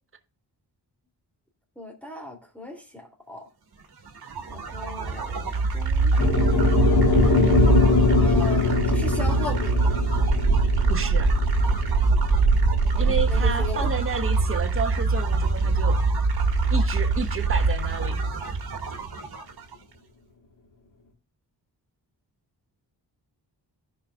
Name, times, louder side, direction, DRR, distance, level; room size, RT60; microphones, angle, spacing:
voice 1, 1.8-3.5 4.5-7.0 8.2-10.0 12.8-13.9, left 2 dB, 5° left, 2.9 m, -38 dB
sound 1, 4.1-19.7, right 3 dB, 60° right, 1.9 m, -23 dB
sound 2, 6.2-14.4, left 4 dB, 50° left, 1.7 m, -23 dB
voice 2, 10.9-11.3 13.0-16.0 16.7-18.2, right 4 dB, 30° right, 1.2 m, -31 dB
16.0 x 5.3 x 2.4 m
wide cardioid pair, 95°, 42 cm